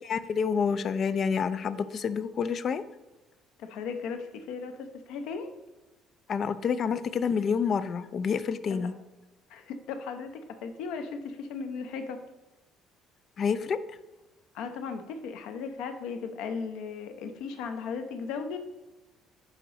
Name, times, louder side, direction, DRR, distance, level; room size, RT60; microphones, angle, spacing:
voice 1, 0.0-2.8 6.3-8.9 13.4-13.8, left 6 dB, 45° left, 13 dB, 0.4 m, -28 dB
voice 2, 3.6-5.5 8.8-8.9 9.5-10.3 10.6-12.2 14.5-18.6, left 5 dB, 80° left, 7 dB, 0.8 m, -36 dB
8.9 x 3.0 x 5.1 m, 1.1 s
cardioid pair, 115°, 0 cm